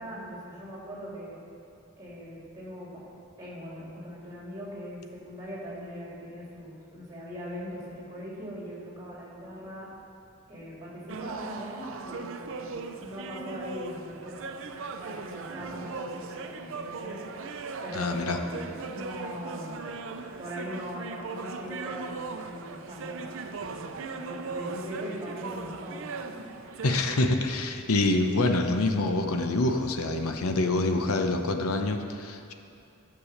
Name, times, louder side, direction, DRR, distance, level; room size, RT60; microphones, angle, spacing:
voice 1, 0.0-1.4 2.0-3.0 3.4-9.9 10.5-17.2 17.8-19.9 20.4-23.2 23.5-26.1, equal, 20° right, -5 dB, 3.0 m, -41 dB
sound 1, 11.1-27.1, right 4 dB, 65° right, 0.6 m, -38 dB
voice 2, 17.9-18.4 26.8-32.5, left 2 dB, 85° left, 5 dB, 0.8 m, -26 dB
9.9 x 7.0 x 6.5 m, 2.6 s
head